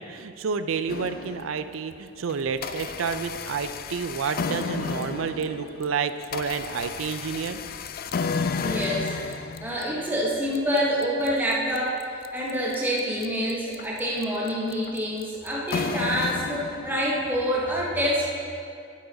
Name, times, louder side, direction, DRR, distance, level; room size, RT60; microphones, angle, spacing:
voice 1, 0.0-7.6, right 6 dB, 75° right, 11 dB, 0.4 m, -30 dB
sound 1, 0.9-1.8 2.3-17.3, left 5 dB, 50° left, 0.4 m, -33 dB
voice 2, 8.6-12.0 12.3-18.2, equal, 10° right, -5 dB, 1.0 m, -27 dB
9.0 x 8.8 x 4.0 m, 2.4 s
head